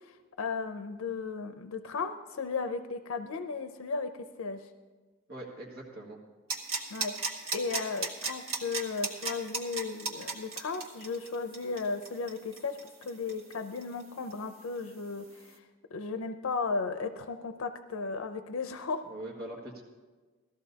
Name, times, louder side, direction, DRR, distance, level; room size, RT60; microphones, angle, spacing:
voice 1, 0.0-4.1 4.4-4.7 6.9-7.1 7.5-15.6 15.9-19.0, left 4 dB, 85° left, 9 dB, 0.5 m, -35 dB
voice 2, 5.3-6.2 19.1-19.8, right 1 dB, 55° right, -4 dB, 1.9 m, -42 dB
sound 1, 6.5-14.0 14.3-14.4, right 4 dB, 85° right, 1.6 m, -35 dB
18.0 x 14.0 x 2.8 m, 1.3 s
head